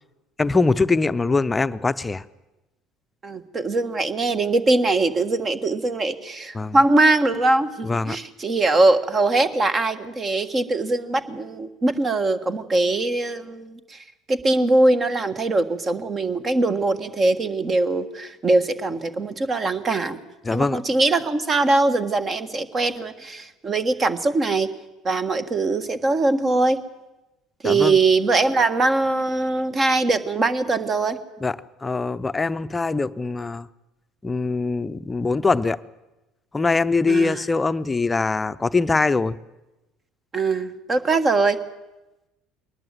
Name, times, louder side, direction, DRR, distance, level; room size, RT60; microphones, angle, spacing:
voice 1, 0.4-2.2 6.5-6.8 7.8-8.2 20.4-20.8 27.6-28.0 31.4-31.6 31.8-33.7 34.2-35.8 36.5-39.4, left 3 dB, 20° left, 13 dB, 0.7 m, -22 dB
voice 2, 3.2-20.2 20.5-24.7 25.0-26.8 27.6-31.2 37.1-37.4 40.3-41.6, right 2 dB, 30° right, 11 dB, 1.6 m, -22 dB
21.5 x 19.5 x 7.7 m, 1.0 s
figure-of-eight pair, 60°, 0 cm